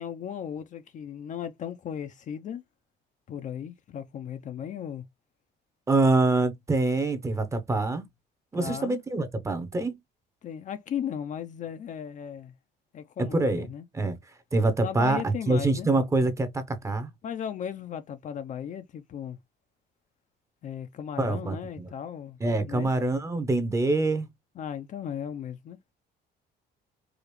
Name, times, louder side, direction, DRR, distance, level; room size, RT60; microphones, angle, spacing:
voice 1, 0.0-2.6 3.3-5.0 8.5-9.0 10.4-12.5 12.9-13.8 14.8-15.9 17.2-19.4 20.6-22.4 22.6-22.9 24.6-25.8, left 9 dB, 40° left, 0.5 m, -36 dB
voice 2, 5.9-8.0 8.5-9.9 13.3-13.7 13.9-14.2 14.5-17.1 21.2-21.9 22.4-24.3, right 2 dB, 15° right, 0.8 m, -25 dB
4.8 x 2.4 x 3.0 m
cardioid pair, 150°, 19 cm